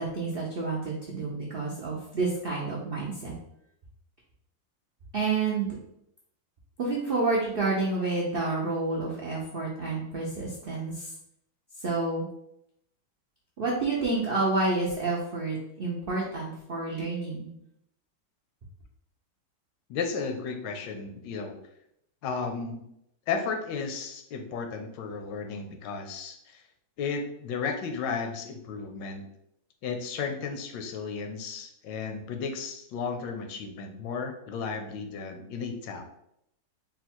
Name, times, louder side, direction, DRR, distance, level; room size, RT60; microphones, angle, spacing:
voice 1, 0.0-3.3 5.1-5.7 6.8-11.1 11.8-12.3 13.6-17.5, right 3 dB, 80° right, -4 dB, 0.5 m, -29 dB
voice 2, 19.9-21.6 22.2-22.8 23.3-26.6 27.0-29.2 29.8-36.0, left 5 dB, 80° left, 5 dB, 1.2 m, -34 dB
3.8 x 2.3 x 4.3 m, 0.77 s
omnidirectional pair, 2.0 m